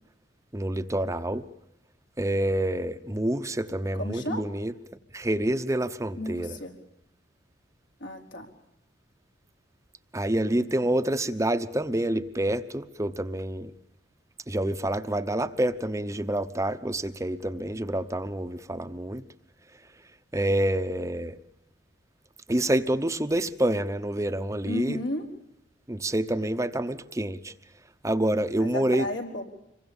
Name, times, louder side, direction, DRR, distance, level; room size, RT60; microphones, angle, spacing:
voice 1, 0.5-1.5 2.2-4.7 5.1-6.6 10.1-13.7 14.5-19.2 20.3-21.4 22.5-25.0 25.9-27.5 28.0-29.1, right 1 dB, 15° right, 9 dB, 0.9 m, -27 dB
voice 2, 4.0-4.5 6.2-6.7 8.0-8.5 10.7-10.8 24.6-25.2 28.6-29.4, left 1 dB, 80° left, 2 dB, 4.5 m, -33 dB
26.5 x 23.0 x 7.2 m, 0.82 s
head